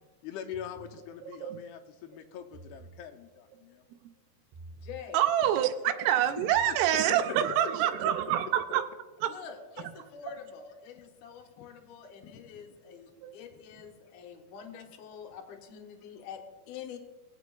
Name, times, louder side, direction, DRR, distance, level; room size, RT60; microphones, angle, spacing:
voice 1, 0.2-3.8 6.4-6.5 7.1-7.2 11.6-11.7 12.2-12.7, left 9 dB, 85° left, 5 dB, 2.6 m, -43 dB
sound 1, 0.5-1.0 2.4-3.1 4.5-5.1 6.4-7.1, right 3 dB, 55° right, 2.5 m, -49 dB
voice 2, 1.2-1.6 5.1-8.8 9.2-9.3, right 11 dB, 85° right, 7 dB, 2.6 m, -26 dB
voice 3, 4.7-5.2 9.2-17.0, left 7 dB, 70° left, 3 dB, 2.0 m, -46 dB
21.0 x 8.0 x 2.3 m, 1.3 s
omnidirectional pair, 4.6 m